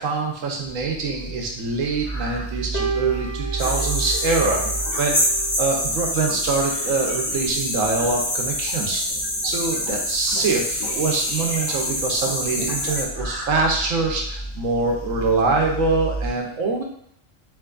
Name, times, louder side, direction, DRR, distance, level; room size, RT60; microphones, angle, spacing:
voice 1, 0.0-4.6 5.0-5.2 5.6-9.0 9.4-16.8, right 3 dB, 85° right, 1 dB, 1.1 m, -24 dB
sound 1, 0.6-16.3, right 2 dB, 20° left, 1.2 m, -34 dB
sound 2, 2.7-9.6, right 4 dB, 50° left, 0.5 m, -35 dB
sound 3, 3.6-13.0, left 1 dB, 70° left, 1.6 m, -26 dB
3.5 x 3.0 x 2.3 m, 0.69 s
omnidirectional pair, 1.3 m